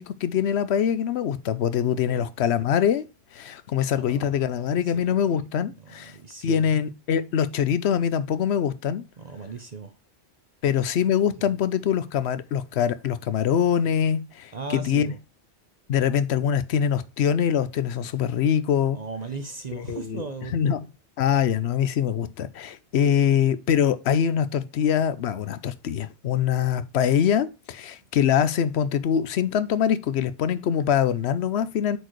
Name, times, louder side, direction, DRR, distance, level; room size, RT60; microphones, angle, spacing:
voice 1, 0.0-3.0 3.3-6.1 6.4-9.0 10.6-15.1 15.9-19.0 19.7-20.2 20.5-20.8 21.2-32.0, left 8 dB, 70° left, 0.9 m, -24 dB
voice 2, 3.9-4.4 4.7-5.2 5.8-6.7 9.2-9.9 11.4-11.5 14.5-15.2 18.9-20.8, right 4 dB, 40° right, 0.8 m, -37 dB
7.9 x 4.5 x 3.1 m
omnidirectional pair, 1.2 m